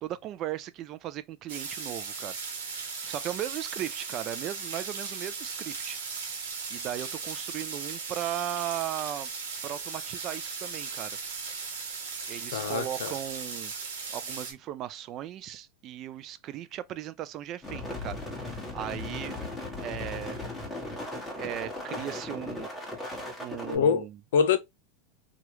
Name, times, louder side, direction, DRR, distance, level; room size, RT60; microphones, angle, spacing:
voice 1, 0.0-2.4 2.6-2.8 3.1-6.0 6.7-9.3 9.6-11.2 12.3-13.7 14.1-19.4 19.8-20.4 21.4-22.7 23.4-24.2, right 12 dB, 35° right, 0.3 m, -37 dB
sound 1, 1.5-14.5, right 5 dB, 85° right, 1.1 m, -37 dB
voice 2, 12.5-13.1 23.7-24.0 24.3-24.6, left 6 dB, 80° left, 0.6 m, -24 dB
sound 2, 17.6-23.8, left 2 dB, 10° left, 1.4 m, -37 dB
3.0 x 2.4 x 3.0 m
supercardioid pair, 145°, 0 cm